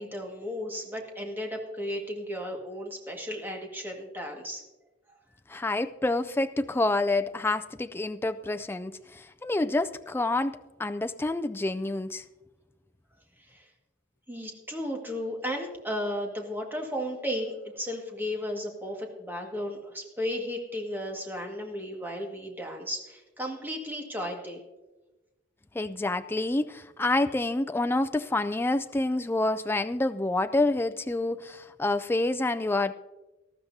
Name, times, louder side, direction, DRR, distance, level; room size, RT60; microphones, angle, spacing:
voice 1, 0.0-4.6 13.4-13.7 14.3-24.6, equal, 10° right, 1.8 m, -34 dB
voice 2, 5.5-12.2 25.7-32.9, left 2 dB, 10° left, 0.3 m, -28 dB
18.5 x 13.5 x 2.8 m
head